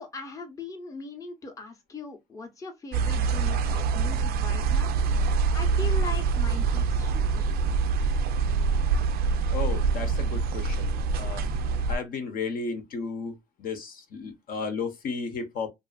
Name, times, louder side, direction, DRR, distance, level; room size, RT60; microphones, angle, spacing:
voice 1, 0.0-4.9 5.5-7.6, left 3 dB, 20° left, 0.6 m, -40 dB
sound 1, 2.9-12.0, right 4 dB, 65° right, 0.4 m, -25 dB
voice 2, 9.5-11.5 11.9-15.7, left 4 dB, 60° left, 0.8 m, -34 dB
2.5 x 2.4 x 2.3 m
cardioid pair, 110°, 17 cm